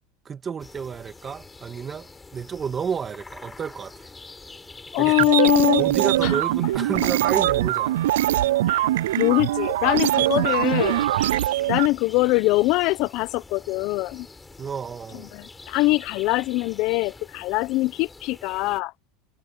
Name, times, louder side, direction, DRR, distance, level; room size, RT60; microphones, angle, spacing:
voice 1, 0.2-4.1 5.0-5.3 5.8-8.0 10.3-10.4 14.6-15.3, right 6 dB, 30° right, 2.0 m, -31 dB
sound 1, 0.6-18.8, left 3 dB, 15° left, 5.9 m, -46 dB
voice 2, 4.9-5.8 6.2-6.3 8.7-8.9 9.2-11.0 11.7-14.3 15.3-18.9, left 20 dB, 60° left, 1.0 m, -22 dB
sound 2, 5.0-11.9, right 14 dB, 80° right, 0.4 m, -22 dB
hypercardioid pair, 100°, 0 cm